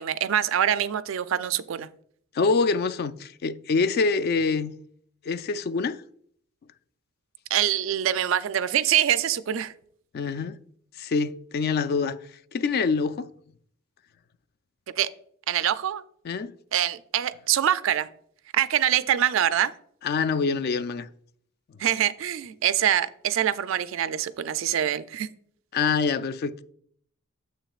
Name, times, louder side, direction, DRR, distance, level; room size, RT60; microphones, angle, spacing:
voice 1, 0.0-1.9 7.5-9.7 15.0-15.1 15.5-16.0 16.7-18.1 18.5-19.7 21.8-25.3, right 10 dB, 65° right, 0.4 m, -24 dB
voice 2, 2.3-4.7 5.3-6.0 10.1-10.5 11.0-12.2 12.5-13.3 16.2-16.5 20.0-21.1 25.7-26.6, left 4 dB, 50° left, 0.3 m, -25 dB
8.9 x 7.1 x 2.4 m
head